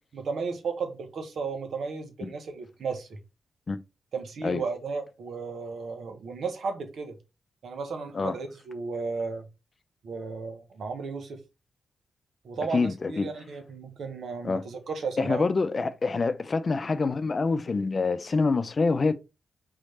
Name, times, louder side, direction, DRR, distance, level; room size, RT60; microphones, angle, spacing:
voice 1, 0.1-3.2 4.1-7.2 7.6-9.5 10.0-11.4 12.4-15.4 15.7-15.9, right 4 dB, 70° right, 1.0 m, -34 dB
voice 2, 12.7-13.3 14.4-14.6 15.2-19.2, left 4 dB, 45° left, 0.5 m, -26 dB
4.0 x 3.2 x 4.1 m
supercardioid pair, 40°, 0 cm